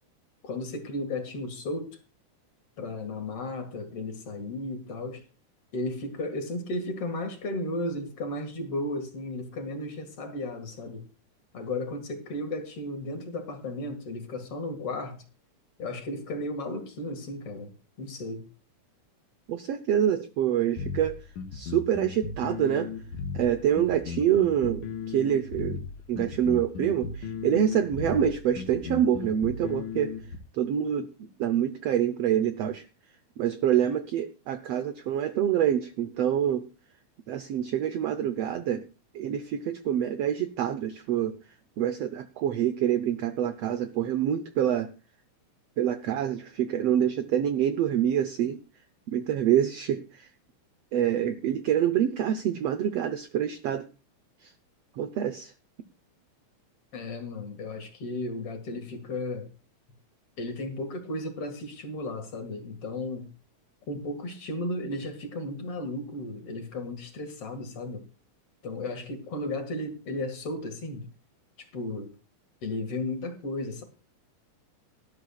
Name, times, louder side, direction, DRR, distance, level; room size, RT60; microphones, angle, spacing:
voice 1, 0.4-2.0 2.8-5.2 5.7-11.0 11.5-15.2 15.8-17.7 18.0-18.5 56.9-59.5 60.4-63.3 63.9-68.0 68.6-71.1 71.6-72.1 72.6-73.8, left 2 dB, 50° left, 2.6 m, -34 dB
voice 2, 19.5-21.2 21.5-22.9 23.3-30.2 30.5-32.8 33.4-36.7 37.3-38.8 39.1-41.4 41.8-44.9 45.8-48.6 49.1-50.3 50.9-53.9 54.4-54.5 55.0-55.5, right 10 dB, 80° right, 1.4 m, -26 dB
sound 1, 20.8-30.4, left 5 dB, 70° left, 2.7 m, -36 dB
18.5 x 12.0 x 2.3 m
omnidirectional pair, 3.7 m